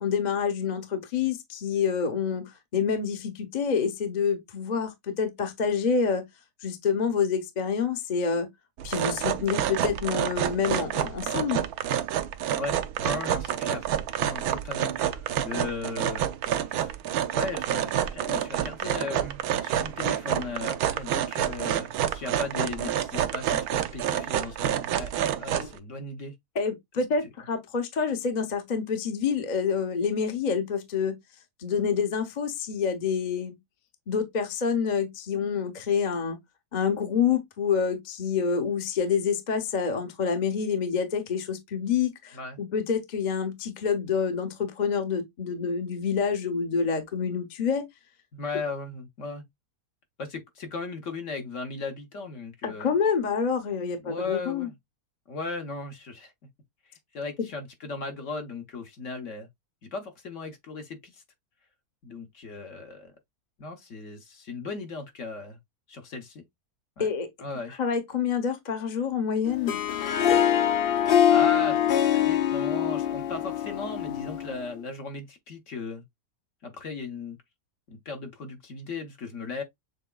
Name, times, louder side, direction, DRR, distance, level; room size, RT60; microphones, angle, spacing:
voice 1, 0.0-6.2 6.6-8.5 8.8-11.6 26.5-31.2 31.6-33.6 34.1-36.4 36.7-47.8 52.6-54.7 67.0-67.3 67.8-69.8, left 6 dB, 35° left, 0.8 m, -27 dB
sound 1, 8.8-25.7, right 10 dB, 75° right, 1.0 m, -28 dB
voice 2, 12.5-13.9 14.2-16.9 17.3-25.1 25.4-26.3 42.3-42.6 48.3-49.5 50.2-52.9 54.0-54.8 55.3-56.3 56.9-59.5 59.8-61.2 62.0-63.1 63.6-65.6 65.9-66.4 67.0-67.1 67.4-67.8 71.3-76.0 76.6-77.4 77.9-79.6, left 3 dB, 55° left, 1.2 m, -37 dB
Harp, 69.5-74.7, left 10 dB, 75° left, 0.5 m, -24 dB
6.8 x 3.4 x 2.3 m
omnidirectional pair, 1.7 m